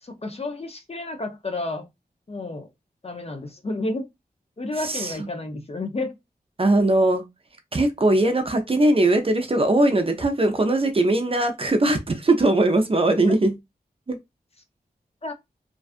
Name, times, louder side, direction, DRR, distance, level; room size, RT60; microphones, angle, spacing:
voice 1, 0.0-1.9 2.3-2.7 3.0-4.1 4.6-6.2 15.2-15.3, left 2 dB, 40° left, 0.5 m, -31 dB
voice 2, 4.8-5.3 6.6-7.2 7.7-13.5 14.1-14.2, right 2 dB, 35° right, 0.5 m, -20 dB
2.5 x 2.3 x 2.4 m
wide cardioid pair, 65°, 16 cm